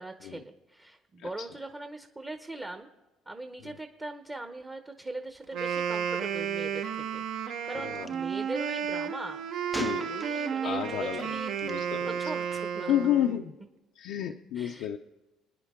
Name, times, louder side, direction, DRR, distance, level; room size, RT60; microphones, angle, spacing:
voice 1, 0.0-2.9 3.3-12.9 14.5-14.9, right 2 dB, 20° right, 6 dB, 0.8 m, -41 dB
Wind instrument woodwind instrument, 5.4-13.5, right 8 dB, 70° right, 1.1 m, -32 dB
Gunshot gunfire, 8.0-8.1 9.7-10.7 11.6-11.8, left 1 dB, 5° left, 0.4 m, -39 dB
voice 2, 9.8-10.1 10.3-11.3 11.6-12.1 12.9-13.5 14.0-15.0, left 11 dB, 75° left, 2 dB, 0.6 m, -30 dB
27.5 x 10.0 x 3.7 m, 1.1 s
cardioid pair, 120°, 0 cm